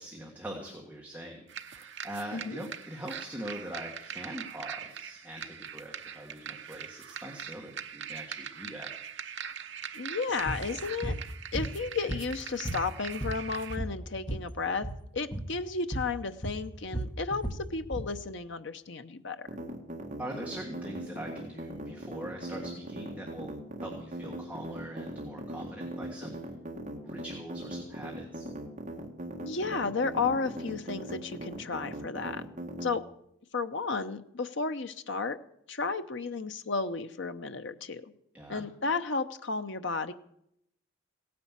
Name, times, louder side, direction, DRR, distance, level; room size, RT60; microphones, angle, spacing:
voice 1, 0.0-8.9 20.2-23.5 23.8-26.5 27.0-28.5 38.3-38.6, right 1 dB, 5° right, -1 dB, 1.6 m, -42 dB
sound 1, 1.5-13.8, right 8 dB, 55° right, 0.8 m, -42 dB
voice 2, 9.9-11.2 11.5-14.9 15.1-19.5 29.4-32.4 32.8-33.0 33.5-35.4 35.7-38.1 38.5-40.1, left 4 dB, 60° left, 9 dB, 0.8 m, -33 dB
sound 2, 10.5-10.6 11.0-11.2 11.5-12.4 12.6-14.5 14.8-15.0 15.3-15.5 15.9-16.1 16.4-18.1, right 1 dB, 20° left, 1.3 m, -35 dB
sound 3, 19.5-32.9, right 1 dB, 40° right, 1.7 m, -39 dB
16.5 x 9.6 x 7.4 m, 0.75 s
head